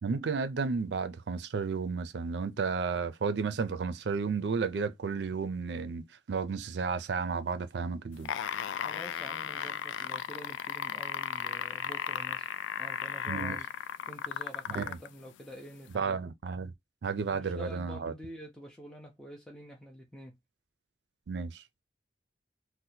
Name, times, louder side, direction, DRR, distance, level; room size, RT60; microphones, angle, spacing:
voice 1, 0.0-8.3 13.3-13.6 14.7-15.0 15.9-16.7 17.0-18.1 21.3-21.6, right 5 dB, 65° right, 0.4 m, -32 dB
sound 1, 8.1-15.1 15.9-16.0, left 9 dB, 85° left, 0.3 m, -35 dB
voice 2, 8.8-12.5 12.8-13.7 14.1-16.2 17.3-20.4, equal, 5° left, 0.4 m, -47 dB
2.7 x 2.1 x 4.1 m
head